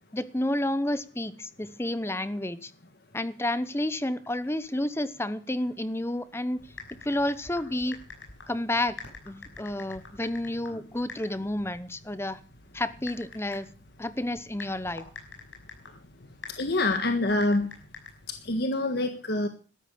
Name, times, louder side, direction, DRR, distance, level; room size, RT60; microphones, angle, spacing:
voice 1, 0.1-2.7 3.1-6.6 7.0-8.0 8.5-9.0 9.3-12.4 12.7-13.7 14.0-15.0, left 1 dB, 15° left, 15 dB, 0.9 m, -30 dB
Typing, 6.6-18.5, left 4 dB, 80° left, 5.9 m, -47 dB
voice 2, 16.5-17.7 18.4-19.5, left 2 dB, 55° left, 6 dB, 1.6 m, -26 dB
13.0 x 12.5 x 6.8 m, 0.38 s
head